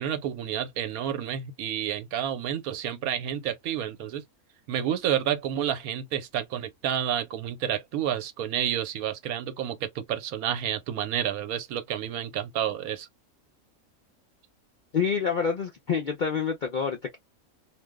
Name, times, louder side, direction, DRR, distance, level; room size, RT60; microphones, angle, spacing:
voice 1, 0.0-4.2 4.7-13.1, right 10 dB, 85° right, 1.1 m, -30 dB
voice 2, 14.9-17.2, left 6 dB, 65° left, 0.4 m, -27 dB
2.6 x 2.0 x 3.4 m
omnidirectional pair, 1.5 m